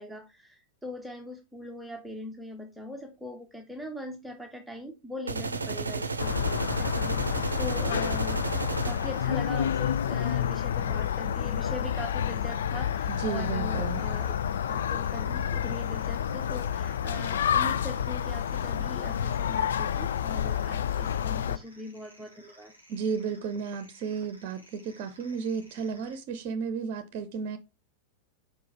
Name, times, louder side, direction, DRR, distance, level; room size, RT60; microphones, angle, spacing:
voice 1, 0.0-8.5 8.8-14.3 14.7-22.7, left 1 dB, 5° right, 0.8 m, -41 dB
sound 1, 5.3-9.3, right 3 dB, 75° right, 0.6 m, -33 dB
sound 2, 6.2-21.6, left 9 dB, 65° left, 0.3 m, -29 dB
sound 3, 7.0-26.2, right 1 dB, 85° left, 2.5 m, -56 dB
voice 2, 13.1-14.0 22.9-27.6, right 6 dB, 45° right, 0.7 m, -33 dB
5.3 x 4.7 x 4.6 m
figure-of-eight pair, 90°, 0 cm